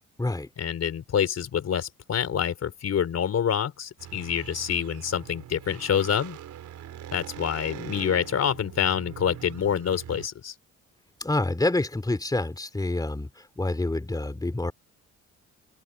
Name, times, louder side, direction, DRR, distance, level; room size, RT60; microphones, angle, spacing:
voice 1, 0.6-6.4 7.1-10.5, left 8 dB, 55° left, 3.8 m, -27 dB
sound 1, 4.0-10.3, right 11 dB, 75° right, 4.1 m, -42 dB
voice 2, 11.2-14.7, left 2 dB, 10° left, 3.2 m, -27 dB
cardioid pair, 90°, 30 cm